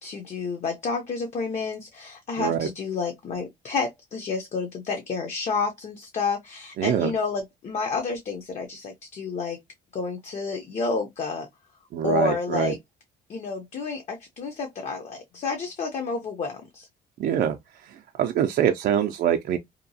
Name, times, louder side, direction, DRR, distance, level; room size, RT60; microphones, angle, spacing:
voice 1, 0.0-9.6 9.9-11.5 12.0-12.8 13.3-16.9, left 4 dB, 45° left, 0.6 m, -30 dB
voice 2, 2.4-2.7 6.8-7.1 11.9-12.7 17.2-17.6 17.8-19.6, right 9 dB, 60° right, 0.4 m, -24 dB
2.8 x 2.2 x 2.6 m
cardioid pair, 110°, 17 cm